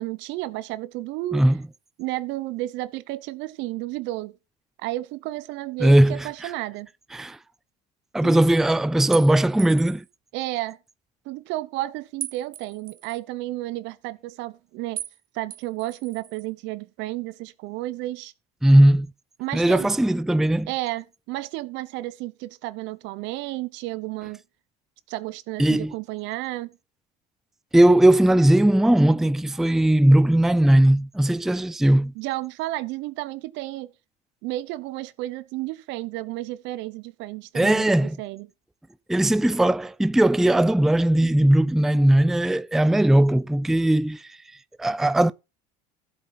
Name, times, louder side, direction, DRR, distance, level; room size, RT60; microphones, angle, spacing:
voice 1, 0.0-1.4 2.0-4.4 4.8-6.9 8.2-8.4 10.3-10.8 11.2-15.0 15.3-18.3 19.4-19.9 20.7-24.4 25.1-26.7 32.1-33.9 34.4-38.5, right 17 dB, 65° right, 1.0 m, -32 dB
voice 2, 5.8-6.5 7.1-7.4 8.1-10.0 18.6-19.1 19.5-20.7 25.6-25.9 27.7-32.1 37.5-38.2 39.1-44.4 44.8-45.3, right 1 dB, ahead, 0.5 m, -18 dB
sound 1, 9.1-10.1 12.2-13.2 15.0-15.2 15.5-16.5, right 12 dB, 45° right, 0.8 m, -37 dB
14.0 x 8.0 x 4.1 m
supercardioid pair, 85°, 20 cm